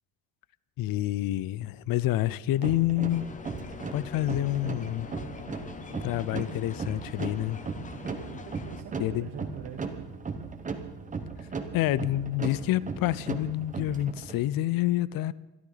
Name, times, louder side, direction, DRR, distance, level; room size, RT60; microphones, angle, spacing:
voice 1, 0.8-3.3 3.9-5.1 6.0-7.6 9.0-9.3 11.7-15.3, left 14 dB, 55° left, 0.6 m, -28 dB
sound 1, 2.6-14.4, right 4 dB, 20° right, 1.1 m, -37 dB
sound 2, 3.1-8.8, left 5 dB, 20° left, 0.7 m, -43 dB
voice 2, 7.9-10.1, right 8 dB, 60° right, 1.5 m, -44 dB
22.0 x 14.0 x 4.0 m
cardioid pair, 175°, 43 cm